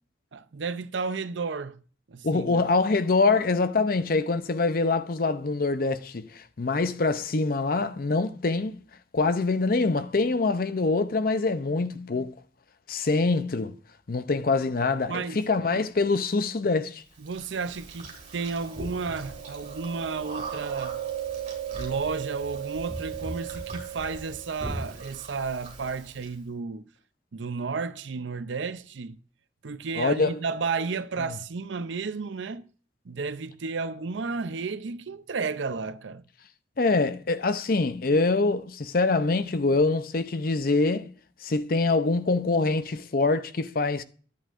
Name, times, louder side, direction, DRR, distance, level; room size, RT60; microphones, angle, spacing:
voice 1, 0.3-1.8 2.1-2.6 15.1-15.4 15.7-15.8 17.2-21.0 21.7-26.9 27.3-29.2 29.6-32.7 33.0-36.2, right 4 dB, 85° right, 0.6 m, -32 dB
voice 2, 2.2-8.8 9.1-12.3 12.9-13.7 14.1-17.0 30.0-30.4 36.8-41.1 41.4-44.0, left 3 dB, 50° left, 0.6 m, -25 dB
Chewing mastication, 17.3-26.3, right 6 dB, 40° right, 3.1 m, -36 dB
11.0 x 8.5 x 2.5 m
head